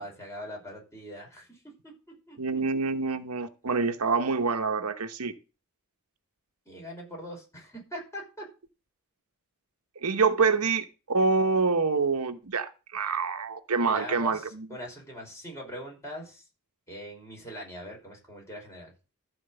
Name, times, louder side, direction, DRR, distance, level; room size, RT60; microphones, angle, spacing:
voice 1, 0.0-1.9 2.3-2.6 6.7-8.5 13.8-16.5 16.9-18.9, equal, 15° left, 5.6 m, -42 dB
voice 2, 2.4-5.3 10.0-14.7, right 4 dB, 90° right, 1.0 m, -26 dB
13.5 x 4.6 x 7.8 m
head